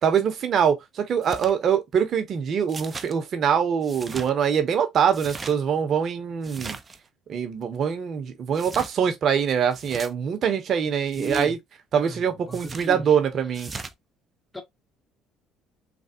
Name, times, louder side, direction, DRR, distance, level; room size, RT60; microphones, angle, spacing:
voice 1, 0.0-6.8 7.3-11.6 11.9-13.7, right 7 dB, 55° right, 0.9 m, -24 dB
sound 1, 1.2-1.5 2.7-3.1 3.8-4.3 5.1-5.5 6.4-7.0 8.5-8.9 9.7-10.1 11.1-11.5 12.5-12.9 13.5-13.9, right 4 dB, 30° right, 0.5 m, -38 dB
voice 2, 10.9-11.6 12.0-13.2 14.5-14.6, right 2 dB, 10° left, 1.0 m, -36 dB
3.4 x 2.3 x 2.7 m
supercardioid pair, 70°, 0 cm